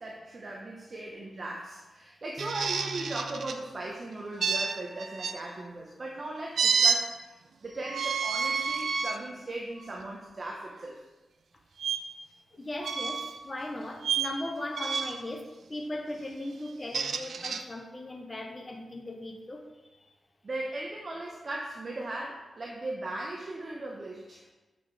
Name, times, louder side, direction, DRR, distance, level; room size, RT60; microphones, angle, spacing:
voice 1, 0.0-7.3 7.6-11.0 20.4-24.4, right 2 dB, 35° right, -1 dB, 0.8 m, -38 dB
sound 1, 2.4-3.6 4.4-5.4 6.6-7.0 7.8-9.2 9.8-10.0 11.8-12.0 12.8-13.4 14.0-14.3 14.7-15.3 16.7-17.6, right 5 dB, 65° right, 0.5 m, -29 dB
voice 2, 12.5-19.6, left 1 dB, 20° left, 1 dB, 0.7 m, -38 dB
6.7 x 6.2 x 4.6 m, 1.1 s
wide cardioid pair, 175°, 0 cm